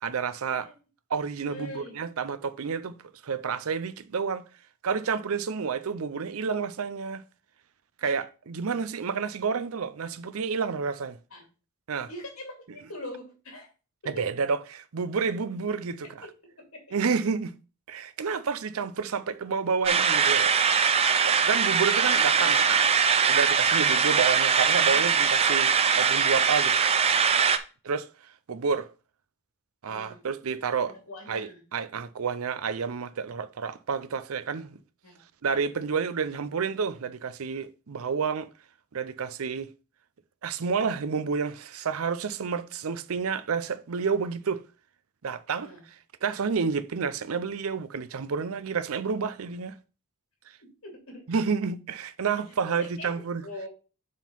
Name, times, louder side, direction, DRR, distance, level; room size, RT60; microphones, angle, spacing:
voice 1, 0.0-0.7 1.1-3.0 3.2-4.4 4.8-7.2 8.0-11.2 11.9-12.1 14.1-16.3 16.9-17.5 17.9-20.5 21.2-22.8 23.3-26.8 27.8-28.9 29.8-31.0 31.3-34.8 35.4-38.5 38.9-39.7 40.4-44.6 45.2-49.7 51.3-53.4, right 5 dB, 75° right, 0.5 m, -30 dB
voice 2, 1.4-1.9 8.0-8.2 11.3-11.4 12.1-13.7 14.0-14.2 16.2-17.0 22.0-22.5 24.9-25.1 29.9-30.2 30.9-31.6 35.0-35.3 45.6-45.8 50.6-51.2 52.5-53.7, left 1 dB, 65° left, 2.4 m, -43 dB
sound 1, 19.8-27.6, right 6 dB, 25° right, 0.4 m, -22 dB
7.4 x 3.8 x 5.4 m
head